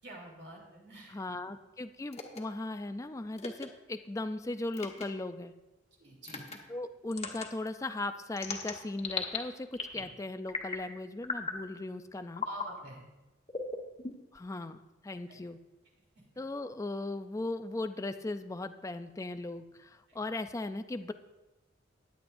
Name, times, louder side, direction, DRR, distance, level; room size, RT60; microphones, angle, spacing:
voice 1, 0.0-1.2 1.5-1.6 6.0-6.5 9.9-10.1 12.4-13.0 15.3-15.4 16.1-16.2 20.1-20.2, equal, 60° right, -2 dB, 3.1 m, -48 dB
voice 2, 1.1-5.5 6.7-12.5 14.3-15.6 16.4-21.1, left 2 dB, 15° left, 9 dB, 0.4 m, -38 dB
sound 1, 2.1-2.4 3.4-3.7 4.7-5.1 6.2-6.6 7.1-7.5 8.4-9.4 9.7-10.1 10.5-10.9 11.2-11.6 12.3-12.7 13.5-14.4, left 4 dB, 35° left, 1.2 m, -37 dB
16.0 x 10.0 x 2.6 m, 1.1 s
head